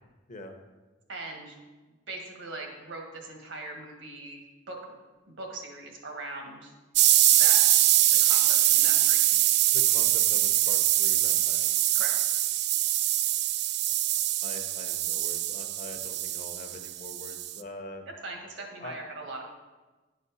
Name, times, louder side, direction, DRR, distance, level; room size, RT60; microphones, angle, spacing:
voice 1, 1.1-1.6 2.1-4.4 4.7-4.9 5.3-6.7 7.4-7.7 8.1-9.4 11.9-12.1 18.2-19.5, right 2 dB, 75° right, 1 dB, 1.6 m, -40 dB
sound 1, 7.0-17.6, right 14 dB, 60° right, 0.3 m, -23 dB
voice 2, 9.7-11.7 14.4-18.0 18.8-19.0, left 2 dB, 40° left, 5 dB, 0.8 m, -44 dB
10.5 x 5.0 x 4.2 m, 1.2 s
head